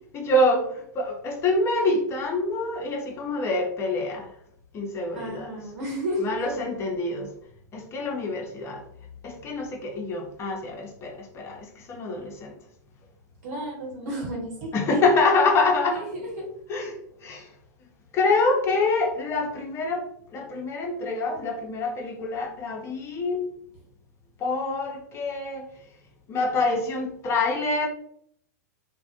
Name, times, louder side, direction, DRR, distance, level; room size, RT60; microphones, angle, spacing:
voice 1, 0.1-4.3 4.7-5.5 6.2-7.3 7.7-8.8 9.2-12.5 14.7-16.1 16.7-17.0 17.2-17.5 18.1-20.0 20.3-23.4 24.4-25.7 26.3-27.9, left 2 dB, 30° left, 1 dB, 0.6 m, -26 dB
voice 2, 5.1-6.5 13.4-15.0 16.2-16.5, right 1 dB, 60° right, -3 dB, 1.0 m, -32 dB
2.4 x 2.1 x 2.7 m, 0.68 s
hypercardioid pair, 100°, 9 cm